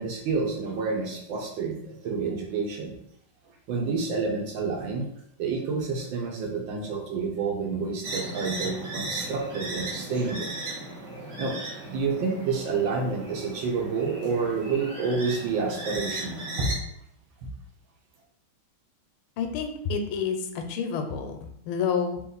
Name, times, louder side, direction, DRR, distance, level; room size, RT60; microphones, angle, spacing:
voice 1, 0.0-2.9 3.7-5.1 5.4-10.5 11.4-11.6 11.9-16.7, right 4 dB, 70° right, 1 dB, 1.5 m, -29 dB
sound 1, 8.0-16.7, right 2 dB, 50° right, 1.1 m, -36 dB
voice 2, 19.4-22.2, left 6 dB, 85° left, 5 dB, 1.5 m, -29 dB
3.6 x 3.0 x 3.9 m, 0.72 s
omnidirectional pair, 2.3 m